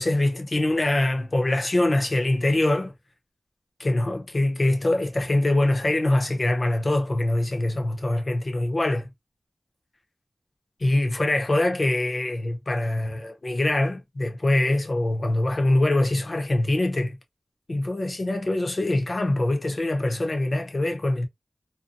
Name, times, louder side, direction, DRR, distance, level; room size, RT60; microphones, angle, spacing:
voice 1, 0.0-2.9 3.8-9.1 10.8-17.1 17.7-21.3, left 1 dB, 50° left, 0.8 m, -23 dB
2.7 x 2.2 x 2.6 m
wide cardioid pair, 60°, 0 cm